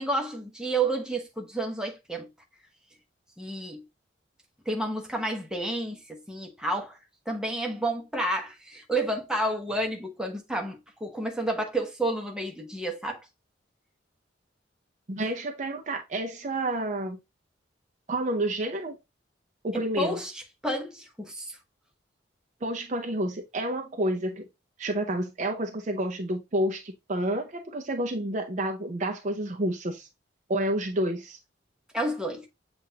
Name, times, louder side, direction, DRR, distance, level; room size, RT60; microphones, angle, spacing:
voice 1, 0.0-2.3 3.4-3.8 4.7-7.0 7.3-13.3 19.7-21.6 31.9-32.5, right 1 dB, 5° right, 0.9 m, -30 dB
voice 2, 15.1-17.2 18.1-19.0 19.6-20.2 22.6-24.5 24.8-30.1 30.5-31.4, right 1 dB, 40° right, 0.6 m, -29 dB
7.5 x 2.5 x 2.8 m
head